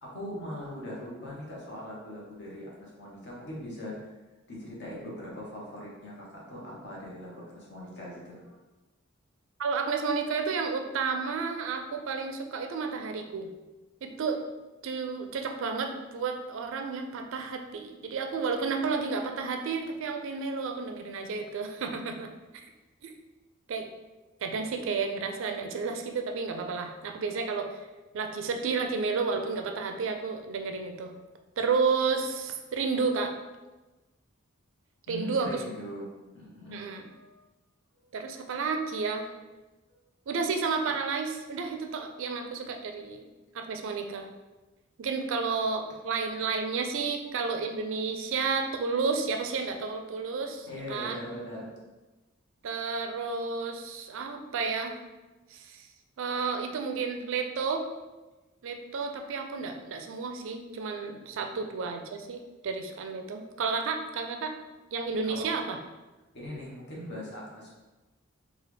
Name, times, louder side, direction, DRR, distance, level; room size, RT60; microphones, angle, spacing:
voice 1, 0.0-4.1 4.5-8.6 35.1-36.1 36.3-37.4 50.1-51.7 61.2-61.5 65.2-65.5 66.3-67.7, equal, 60° left, -4 dB, 1.1 m, -41 dB
voice 2, 9.6-13.5 14.0-14.4 14.8-22.7 23.0-23.1 23.7-23.9 24.4-27.8 28.1-31.2 31.6-33.3 35.1-35.6 36.7-37.0 38.1-39.3 40.3-43.3 43.5-44.3 45.0-51.2 52.6-55.0 55.5-55.9 56.2-57.9 58.6-64.5 64.9-65.8, right 4 dB, 65° right, 5 dB, 0.4 m, -31 dB
3.9 x 2.4 x 3.3 m, 1.1 s
head